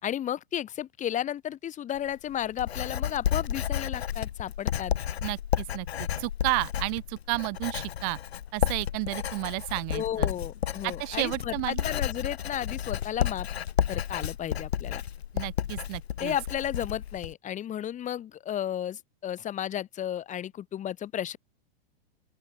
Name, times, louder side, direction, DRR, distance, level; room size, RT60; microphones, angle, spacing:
voice 1, 0.0-4.9 9.9-13.5 13.9-15.0 16.2-21.4, left 10 dB, 25° left, 4.1 m, -33 dB
Writing, 2.0-17.3, left 10 dB, 85° left, 2.9 m, -32 dB
voice 2, 5.2-8.2 8.5-10.3 10.8-11.8 15.3-16.3, right 39 dB, 40° right, 0.8 m, -32 dB
open air
hypercardioid pair, 135°, 31 cm